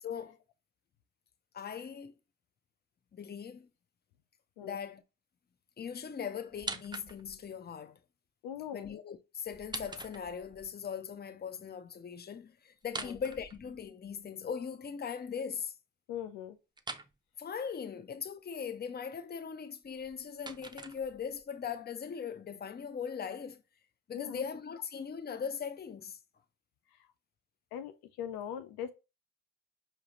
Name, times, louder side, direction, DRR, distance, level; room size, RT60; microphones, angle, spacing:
voice 1, 0.0-0.4 1.5-2.1 3.1-3.7 4.6-5.0 5.8-8.0 8.7-15.7 17.4-23.6 24.1-26.2, left 7 dB, 25° left, 0.6 m, -40 dB
sound 1, 6.5-7.5 9.5-10.7 12.8-14.1 16.8-17.1 19.8-21.4, right 3 dB, 10° right, 0.5 m, -44 dB
voice 2, 8.4-8.9 12.9-13.2 16.1-16.6 24.1-24.5 27.7-28.9, left 9 dB, 80° left, 0.6 m, -41 dB
4.9 x 2.8 x 3.0 m
hypercardioid pair, 45°, 37 cm